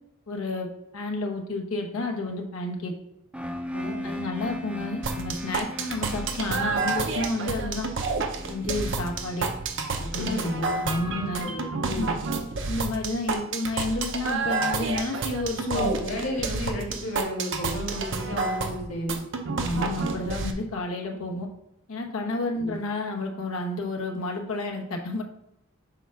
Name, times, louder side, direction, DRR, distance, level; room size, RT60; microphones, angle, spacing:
voice 1, 0.3-0.7 0.9-2.9 4.0-7.9 8.5-9.5 10.1-10.5 10.8-11.5 11.9-12.1 12.7-15.9 19.6-21.5 21.9-25.2, left 2 dB, 90° left, 1 dB, 1.1 m, -30 dB
sound 1, 3.3-11.1, left 1 dB, 5° right, 0.5 m, -38 dB
voice 2, 3.7-4.1 10.2-10.8 11.1-12.1 15.7-19.2 22.6-22.7, equal, 65° left, -1 dB, 2.0 m, -32 dB
sound 2, 5.0-20.5, right 4 dB, 60° right, 0.7 m, -30 dB
7.1 x 2.4 x 5.6 m, 0.84 s
head